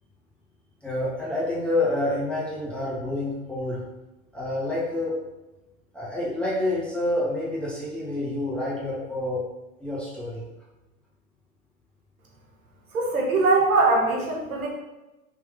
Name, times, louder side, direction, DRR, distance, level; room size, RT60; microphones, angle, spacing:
voice 1, 0.8-3.8 4.3-5.2 5.9-9.4 9.8-10.5, left 1 dB, 5° left, -8 dB, 1.2 m, -28 dB
voice 2, 12.9-14.7, right 3 dB, 80° right, -1 dB, 1.2 m, -21 dB
3.6 x 3.0 x 3.5 m, 1.0 s
hypercardioid pair, 100°, 42 cm